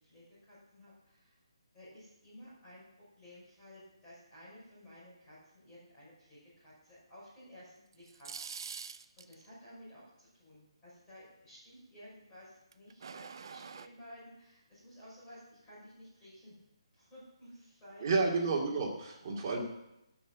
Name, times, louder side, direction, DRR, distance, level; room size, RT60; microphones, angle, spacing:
voice 1, 0.0-1.3 1.7-8.5 9.2-16.6 16.9-18.4, equal, 10° left, -9 dB, 5.7 m, -55 dB
sound 1, 7.9-9.4 12.7-13.9, right 6 dB, 45° right, 0.5 m, -45 dB
voice 2, 18.0-19.6, right 3 dB, 30° right, -1 dB, 2.5 m, -31 dB
12.5 x 6.1 x 7.3 m, 0.87 s
hypercardioid pair, 170°, 3 cm